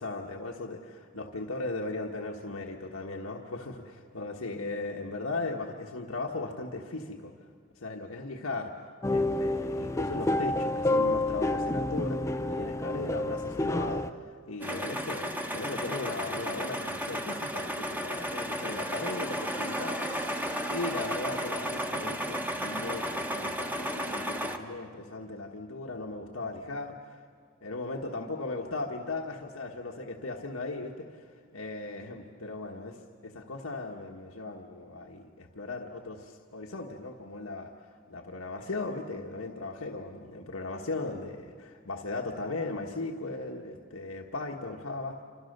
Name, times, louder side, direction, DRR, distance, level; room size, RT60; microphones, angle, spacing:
voice 1, 0.0-7.3 7.7-8.7 9.1-20.4 20.7-27.3 27.6-45.2, left 2 dB, 90° left, 1 dB, 1.4 m, -37 dB
sound 1, 9.0-14.1, left 2 dB, 15° left, 0.6 m, -29 dB
sound 2, 14.6-24.6, equal, 10° right, 1.4 m, -33 dB
28.0 x 26.0 x 6.7 m, 2.1 s
head